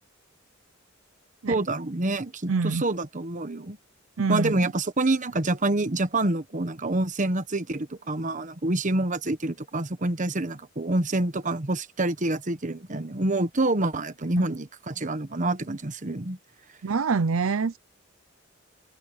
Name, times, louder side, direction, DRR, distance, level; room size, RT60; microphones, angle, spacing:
voice 1, 1.5-3.8 4.3-16.4, right 2 dB, 40° right, 1.2 m, -27 dB
voice 2, 2.5-2.8 4.2-4.6 14.4-14.5 16.8-17.8, right 4 dB, 85° right, 0.6 m, -25 dB
head